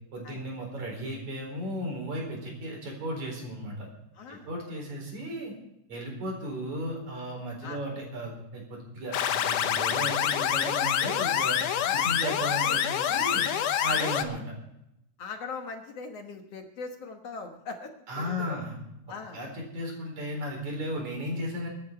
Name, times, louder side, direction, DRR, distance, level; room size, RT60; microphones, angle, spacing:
voice 1, 0.1-3.9 4.3-5.5 5.9-11.6 11.9-13.5 13.8-14.5 18.1-18.8 19.3-21.7, equal, 65° right, 1 dB, 5.6 m, -35 dB
voice 2, 4.1-4.5 7.6-7.8 11.8-12.1 12.4-12.8 13.9-14.1 15.2-18.6 19.1-19.4, left 4 dB, 60° left, 4 dB, 2.1 m, -40 dB
sound 1, 9.1-14.2, left 10 dB, 85° left, 2.4 m, -26 dB
23.5 x 9.7 x 4.6 m, 0.82 s
omnidirectional pair, 3.5 m